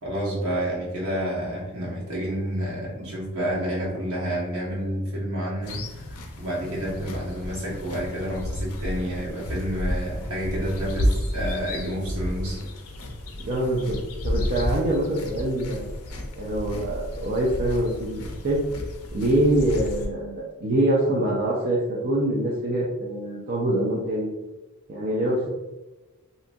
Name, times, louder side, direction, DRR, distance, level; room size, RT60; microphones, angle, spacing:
voice 1, 0.0-6.0 6.4-12.6, equal, 75° right, -5 dB, 1.0 m, -29 dB
sound 1, 5.6-20.1, equal, 75° left, 0.5 m, -31 dB
voice 2, 13.4-14.0 14.2-15.9 16.4-18.6 19.1-24.3 24.9-25.5, right 1 dB, 45° right, -5 dB, 0.4 m, -24 dB
2.8 x 2.3 x 2.5 m, 1.1 s
head